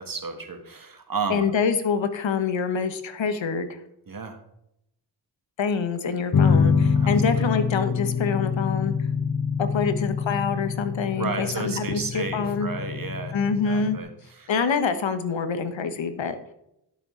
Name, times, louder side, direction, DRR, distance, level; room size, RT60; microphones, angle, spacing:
voice 1, 0.0-1.4 4.1-4.4 7.0-7.1 7.3-7.6 11.1-13.4 13.6-14.5, right 4 dB, 50° right, 6 dB, 1.6 m, -32 dB
voice 2, 1.3-3.8 5.6-8.9 9.6-12.7 13.3-14.0 14.5-16.4, left 5 dB, 85° left, 10 dB, 1.0 m, -26 dB
sound 1, 6.3-14.0, left 6 dB, 50° left, 1.1 m, -25 dB
11.0 x 6.7 x 3.7 m, 0.81 s
cardioid pair, 65°, 44 cm